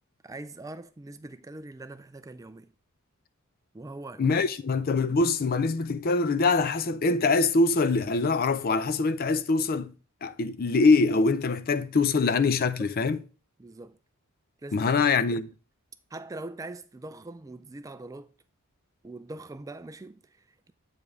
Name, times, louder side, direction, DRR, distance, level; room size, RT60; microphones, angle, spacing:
voice 1, 0.2-2.7 3.7-4.3 12.8-12.9 13.6-14.0 14.6-15.4 16.1-18.3 19.0-20.7, right 2 dB, 15° right, 0.3 m, -42 dB
voice 2, 4.2-9.9 10.2-13.2 14.7-15.5, left 3 dB, 45° left, 0.5 m, -24 dB
8.0 x 5.1 x 3.5 m
head